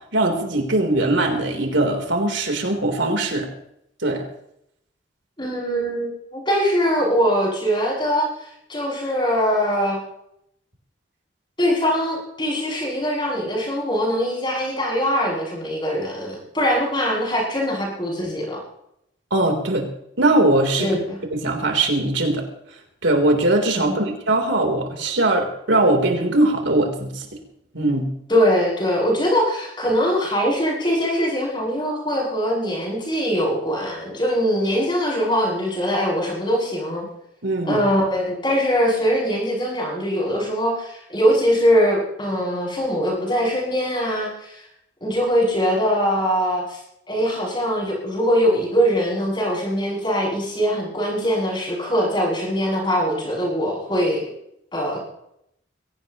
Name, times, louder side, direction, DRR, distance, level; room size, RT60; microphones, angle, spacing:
voice 1, 0.1-3.5 4.0-4.2 19.3-19.8 20.2-20.9 21.3-22.4 23.0-27.3 27.7-28.1 37.4-37.8, right 2 dB, 80° right, 2 dB, 3.8 m, -20 dB
voice 2, 5.4-8.3 8.7-10.0 11.6-18.6 20.8-21.2 23.9-24.1 28.3-37.1 37.6-44.6 45.0-46.8 47.1-54.2 54.7-55.0, equal, 25° left, -4 dB, 7.8 m, -22 dB
22.5 x 18.0 x 3.1 m, 0.77 s
head